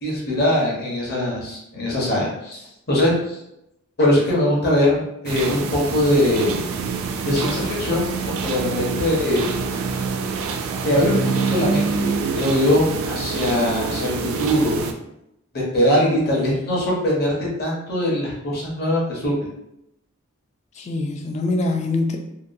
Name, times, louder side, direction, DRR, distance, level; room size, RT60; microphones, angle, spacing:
voice 1, 0.0-3.4 4.0-6.6 7.2-8.0 8.4-9.4 10.8-11.2 11.5-14.8 15.5-19.3, left 1 dB, 50° left, -4 dB, 0.9 m, -21 dB
sound 1, 5.3-14.9, right 5 dB, 65° right, 0.3 m, -26 dB
voice 2, 16.0-16.7 20.8-22.2, left 2 dB, 30° left, 3 dB, 0.3 m, -25 dB
2.8 x 2.2 x 2.5 m, 0.82 s
head